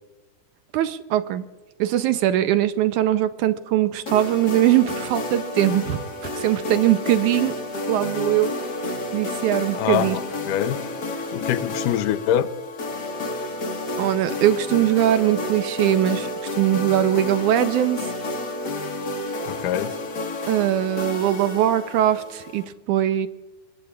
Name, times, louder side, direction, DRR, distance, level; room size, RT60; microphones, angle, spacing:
voice 1, 0.7-1.4 1.8-6.0 6.3-7.6 7.9-8.6 9.1-10.2 14.0-16.3 16.6-18.1 20.5-23.3, right 12 dB, 80° right, 2.0 m, -21 dB
sound 1, 4.1-22.6, left 2 dB, 40° left, 1.5 m, -30 dB
voice 2, 9.7-10.2 10.5-10.8 11.3-12.5 19.5-19.9, left 11 dB, 80° left, 2.3 m, -24 dB
26.5 x 22.5 x 2.4 m
omnidirectional pair, 3.8 m